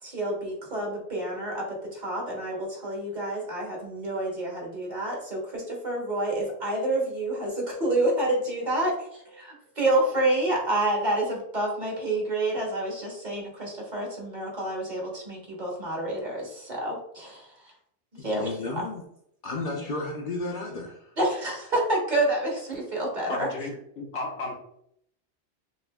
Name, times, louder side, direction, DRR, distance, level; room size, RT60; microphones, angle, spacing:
voice 1, 0.0-17.7 18.1-18.8 21.2-23.7, right 1 dB, 45° right, -1 dB, 1.2 m, -28 dB
voice 2, 18.2-19.0 19.4-21.2, left 2 dB, 55° left, -1 dB, 0.7 m, -33 dB
voice 3, 23.3-24.5, left 2 dB, 85° left, -2 dB, 1.3 m, -34 dB
6.2 x 2.6 x 2.2 m, 0.72 s
omnidirectional pair, 1.2 m